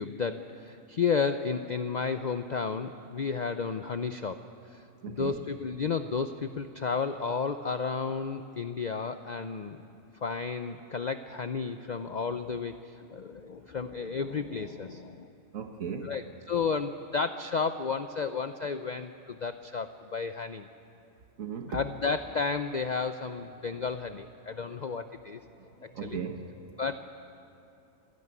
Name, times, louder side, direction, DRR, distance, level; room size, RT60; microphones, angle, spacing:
voice 1, 0.0-4.4 4.7-9.8 10.2-15.3 16.0-20.7 21.7-25.5 25.8-26.2 26.8-26.9, left 5 dB, 45° left, 9 dB, 0.6 m, -32 dB
voice 2, 5.0-5.4 15.5-16.1 21.4-21.8 25.9-26.6, right 6 dB, 85° right, 5 dB, 1.6 m, -36 dB
26.0 x 17.5 x 9.7 m, 2.7 s
omnidirectional pair, 1.4 m